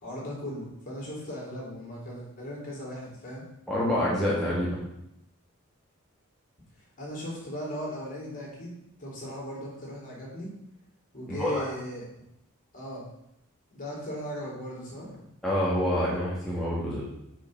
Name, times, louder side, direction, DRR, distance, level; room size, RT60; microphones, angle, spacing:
voice 1, 0.0-3.5 7.0-10.5 11.1-12.0 12.7-13.0 13.7-15.2, equal, 40° left, -5 dB, 3.3 m, -37 dB
voice 2, 3.7-4.8 11.3-11.6 15.4-17.1, equal, ahead, -8 dB, 1.6 m, -27 dB
6.2 x 5.5 x 6.4 m, 0.81 s
head